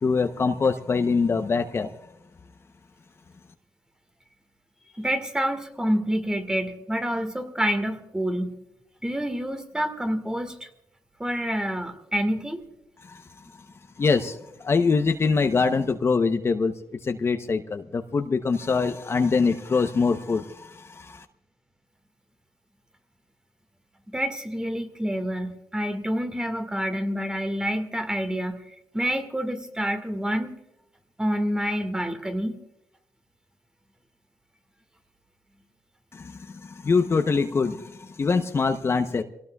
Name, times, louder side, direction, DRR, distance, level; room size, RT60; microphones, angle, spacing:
voice 1, 0.0-1.9 13.0-13.6 14.0-16.7 17.0-21.3 36.1-39.2, left 4 dB, 35° left, 7 dB, 0.8 m, -24 dB
voice 2, 4.9-8.6 9.0-10.7 11.2-12.7 24.1-28.6 28.9-30.5 31.2-32.6, equal, 10° right, 7 dB, 1.8 m, -28 dB
26.5 x 18.0 x 2.3 m, 0.83 s
cardioid pair, 80°, 7 cm